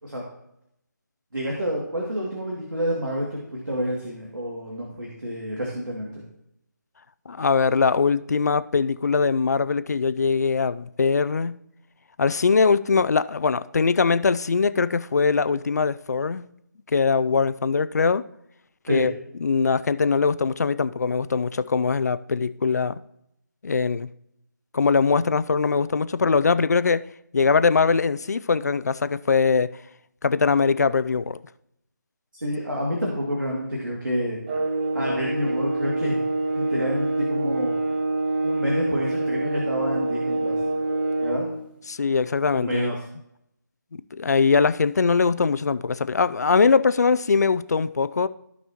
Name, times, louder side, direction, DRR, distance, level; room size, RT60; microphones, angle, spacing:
voice 1, 1.3-6.2 18.9-19.1 32.3-34.4 34.9-36.2 36.5-37.7 38.4-40.6 41.2-41.5 42.5-43.0, equal, 85° right, 2.4 m, -28 dB
voice 2, 7.3-11.6 12.2-16.4 16.9-18.2 18.9-19.1 19.4-23.0 23.6-24.1 24.7-27.0 27.3-29.7 30.2-31.4 41.9-42.9 44.1-48.3, left 5 dB, 55° left, 0.4 m, -21 dB
sound 1, 34.5-41.5, right 2 dB, 30° right, 1.3 m, -26 dB
15.5 x 5.4 x 2.9 m
figure-of-eight pair, 160°, 11 cm